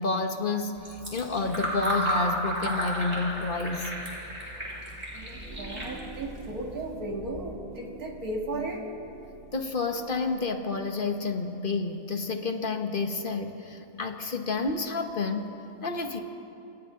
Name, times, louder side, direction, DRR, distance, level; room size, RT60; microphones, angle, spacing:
voice 1, 0.0-3.9 9.5-15.5 15.8-16.2, left 3 dB, 40° left, 5 dB, 1.4 m, -30 dB
Fill (with liquid), 0.8-6.9, right 1 dB, 35° right, 5.4 m, -33 dB
voice 2, 5.1-8.9, right 2 dB, 80° right, 1 dB, 2.6 m, -35 dB
sound 1, 5.2-10.7, right 2 dB, 80° left, 4.1 m, -46 dB
28.0 x 27.0 x 3.9 m, 2.9 s
omnidirectional pair, 1.5 m